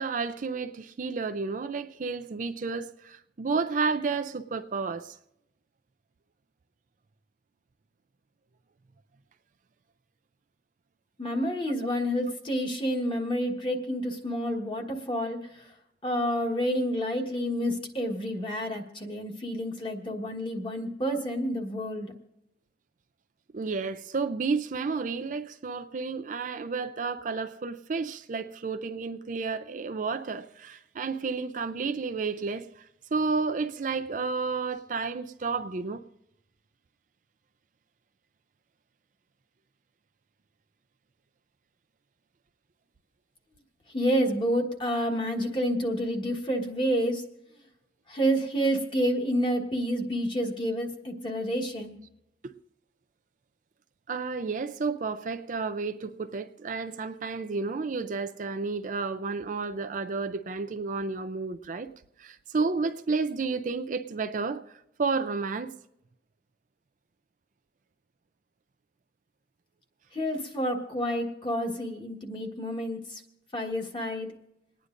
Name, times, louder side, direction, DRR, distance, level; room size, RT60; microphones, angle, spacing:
voice 1, 0.0-5.2 23.5-36.0 52.4-52.5 54.1-61.9 62.2-65.7, right 4 dB, 45° right, 0.4 m, -31 dB
voice 2, 11.2-15.7 16.0-22.1 43.9-47.2 48.1-52.0 70.1-73.2 73.5-74.3, equal, 25° left, 1.5 m, -29 dB
28.0 x 9.7 x 2.6 m
head